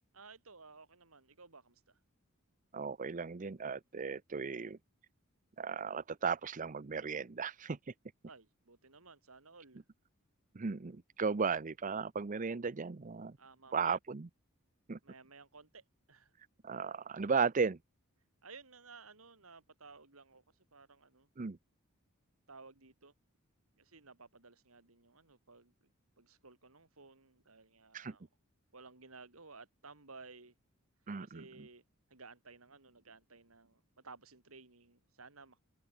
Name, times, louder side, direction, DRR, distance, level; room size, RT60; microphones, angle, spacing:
voice 1, 0.1-2.0 8.3-9.8 13.4-14.0 15.0-16.3 18.4-20.4 20.7-21.3 22.5-23.1 23.8-25.7 26.2-28.3 28.7-30.5 31.2-31.8 32.1-35.6, right 4 dB, 90° right, 3.4 m, -56 dB
voice 2, 2.7-4.8 5.6-7.8 10.5-13.4 13.7-14.3 14.9-15.0 16.6-17.8 21.4-21.6 27.9-28.1 31.1-31.7, right 5 dB, 40° right, 0.6 m, -35 dB
head